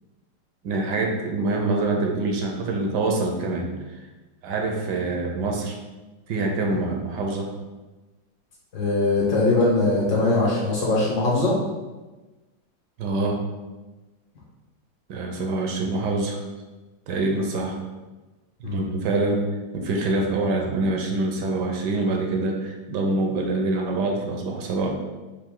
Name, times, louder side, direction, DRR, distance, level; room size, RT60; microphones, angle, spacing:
voice 1, 0.6-3.8 4.4-5.8 6.3-7.5 13.0-13.5 15.1-16.4 17.1-17.8 18.6-19.5 19.7-24.9, right 2 dB, 75° right, 2 dB, 1.2 m, -25 dB
voice 2, 8.7-11.5 18.6-18.8, left 2 dB, 60° left, -5 dB, 1.8 m, -21 dB
5.1 x 2.6 x 3.7 m, 1.2 s
omnidirectional pair, 2.0 m